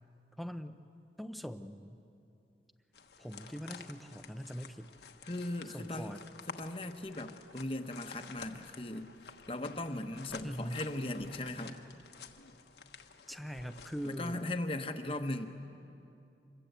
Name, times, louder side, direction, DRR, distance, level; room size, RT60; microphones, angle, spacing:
voice 1, 0.4-0.8 1.2-2.0 3.2-4.9 5.7-6.2 10.4-10.8 13.3-14.4, equal, ahead, 9 dB, 0.7 m, -42 dB
sound 1, 2.9-14.5, left 5 dB, 75° left, 1.2 m, -51 dB
voice 2, 5.2-6.1 6.5-9.1 9.5-11.9 14.0-15.5, left 1 dB, 30° left, 6 dB, 1.1 m, -38 dB
26.0 x 21.5 x 8.1 m, 2.7 s
head